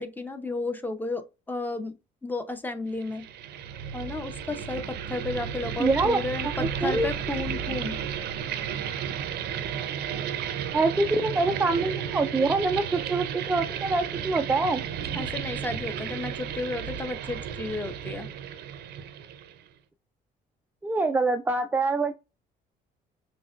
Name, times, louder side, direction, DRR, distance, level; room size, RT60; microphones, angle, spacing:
voice 1, 0.0-1.9 2.2-3.2 3.9-8.0 15.1-18.3, left 3 dB, 10° left, 0.7 m, -33 dB
sound 1, 3.0-19.7, right 8 dB, 75° right, 0.6 m, -33 dB
voice 2, 5.8-7.1 10.7-14.8 20.8-22.1, right 3 dB, 10° right, 0.3 m, -25 dB
6.0 x 2.2 x 2.4 m
cardioid pair, 110°, 17 cm